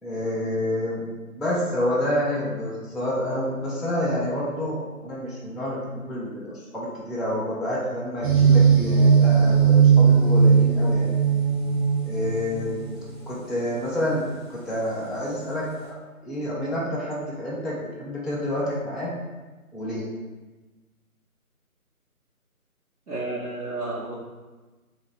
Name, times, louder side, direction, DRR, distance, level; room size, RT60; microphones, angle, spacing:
voice 1, 0.0-11.1 12.1-12.9 13.3-16.0 16.2-19.1 19.7-20.0, left 1 dB, ahead, -7 dB, 0.4 m, -28 dB
sound 1, 8.2-12.9, right 6 dB, 35° right, 1.0 m, -18 dB
voice 2, 23.1-24.1, right 2 dB, 85° right, -8 dB, 1.2 m, -31 dB
3.8 x 2.8 x 4.5 m, 1.2 s
figure-of-eight pair, 165°, 45 cm